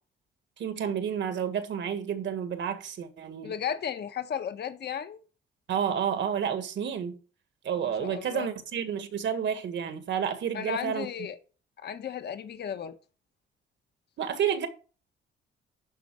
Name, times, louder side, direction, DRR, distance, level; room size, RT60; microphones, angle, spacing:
voice 1, 0.6-3.5 5.7-7.2 7.6-11.1 14.2-14.7, right 8 dB, 65° right, 1.8 m, -30 dB
voice 2, 3.4-5.2 7.8-8.5 10.5-11.4 11.8-12.9, left 8 dB, 55° left, 1.3 m, -34 dB
11.0 x 4.2 x 6.2 m
cardioid pair, 90°, 20 cm